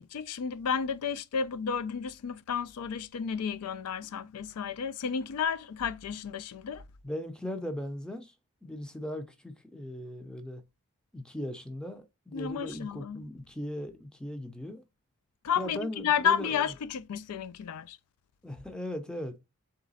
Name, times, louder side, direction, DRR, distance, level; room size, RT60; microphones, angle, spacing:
voice 1, 0.0-6.8 12.3-13.2 15.4-18.0, left 7 dB, 85° left, 0.4 m, -32 dB
voice 2, 7.0-8.3 8.6-10.6 11.1-14.8 15.6-16.7 18.4-19.4, left 1 dB, 5° left, 0.5 m, -38 dB
3.9 x 3.2 x 4.0 m
head